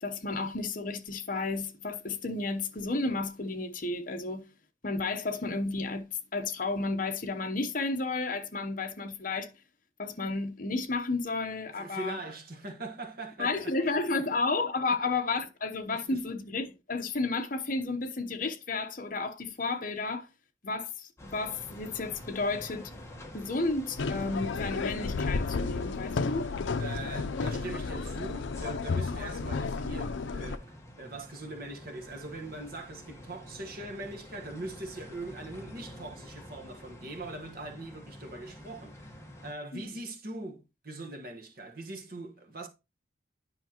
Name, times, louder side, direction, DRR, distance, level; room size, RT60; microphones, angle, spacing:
voice 1, 0.0-4.5 4.8-9.5 10.0-12.2 13.4-20.3 20.6-22.9 23.3-26.5 39.7-39.9, left 3 dB, 45° left, 0.9 m, -32 dB
voice 2, 11.8-13.7 14.3-14.4 15.9-16.2 26.8-42.7, right 2 dB, 50° right, 1.3 m, -41 dB
sound 1, 21.2-39.5, left 1 dB, 15° left, 1.2 m, -48 dB
sound 2, 24.0-30.6, left 4 dB, 80° left, 0.5 m, -32 dB
9.8 x 5.7 x 2.9 m
head